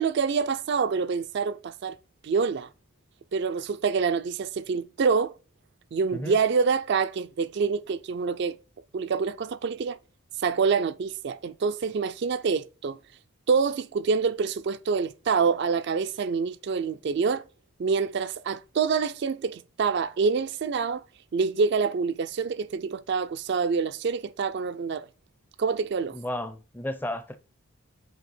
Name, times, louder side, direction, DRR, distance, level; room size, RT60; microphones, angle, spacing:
voice 1, 0.0-2.0 2.2-2.7 3.3-5.3 5.9-8.6 8.9-10.0 10.4-13.0 13.5-17.5 17.8-21.0 21.3-25.1 25.6-26.2, right 5 dB, 50° right, 0.3 m, -26 dB
voice 2, 26.1-27.4, left 1 dB, 10° left, 0.5 m, -33 dB
8.0 x 2.8 x 4.3 m
head